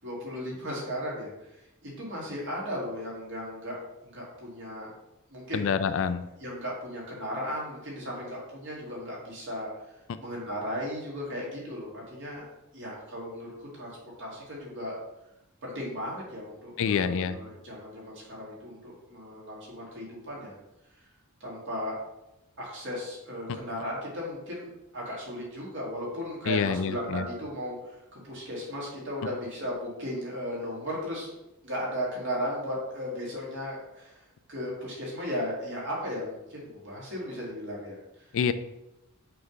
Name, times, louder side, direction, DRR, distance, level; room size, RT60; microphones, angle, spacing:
voice 1, 0.0-4.9 5.3-5.7 6.4-12.5 12.7-15.0 15.6-20.6 21.0-21.1 21.4-22.0 22.6-31.4 31.6-38.3, equal, 60° right, -4 dB, 2.2 m, -36 dB
voice 2, 5.5-6.3 10.1-10.2 16.8-17.4 26.5-27.3 38.3-38.5, left 6 dB, 60° left, 12 dB, 0.4 m, -27 dB
6.0 x 3.3 x 5.2 m, 0.91 s
head